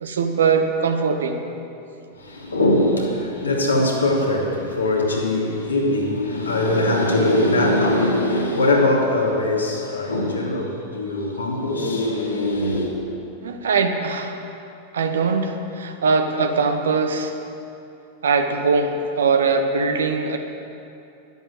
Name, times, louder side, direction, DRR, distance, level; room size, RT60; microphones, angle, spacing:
voice 1, 0.0-1.4 13.4-14.4 14.9-17.3 18.2-20.4, right 4 dB, 65° right, 6 dB, 1.2 m, -21 dB
voice 2, 2.1-13.0, left 1 dB, 75° left, -2 dB, 2.7 m, -21 dB
11.5 x 11.0 x 7.9 m, 2.7 s
figure-of-eight pair, 90°, 0 cm